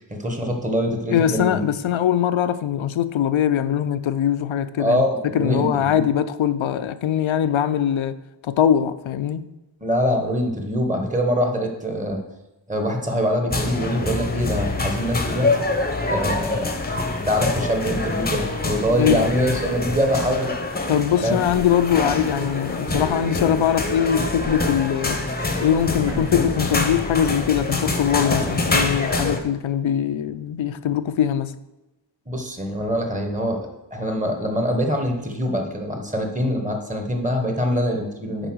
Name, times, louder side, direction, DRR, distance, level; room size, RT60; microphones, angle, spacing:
voice 1, 0.0-1.6 4.8-6.0 9.8-12.2 12.7-15.5 16.1-16.8 17.3-20.5 21.2-21.4 32.3-33.6 33.9-38.5, equal, 15° right, 1.2 m, -24 dB
voice 2, 1.1-5.0 5.3-8.2 8.4-9.4 19.0-19.3 20.9-25.2 25.6-31.5, left 9 dB, 80° left, 0.6 m, -22 dB
sound 1, 13.5-29.4, left 2 dB, 20° left, 0.8 m, -25 dB
Thump thud, 21.5-21.9 22.9-23.3 24.4-24.8 26.1-26.5, right 2 dB, 70° right, 2.4 m, -35 dB
10.0 x 4.0 x 6.2 m
wide cardioid pair, 155°, 46 cm